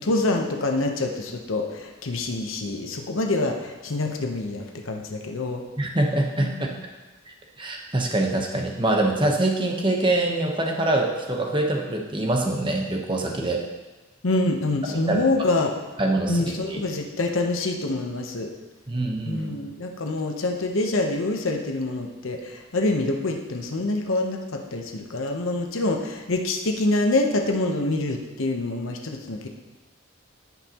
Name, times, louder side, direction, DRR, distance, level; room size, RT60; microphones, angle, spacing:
voice 1, 0.0-5.6 6.4-6.8 14.2-15.7 16.3-18.5 19.2-29.5, left 2 dB, 80° left, 3 dB, 0.9 m, -26 dB
voice 2, 5.8-6.5 7.6-13.6 15.1-15.2 16.0-16.8 18.9-19.5, right 2 dB, 25° right, 1 dB, 1.0 m, -24 dB
16.0 x 5.5 x 3.0 m, 1.2 s
head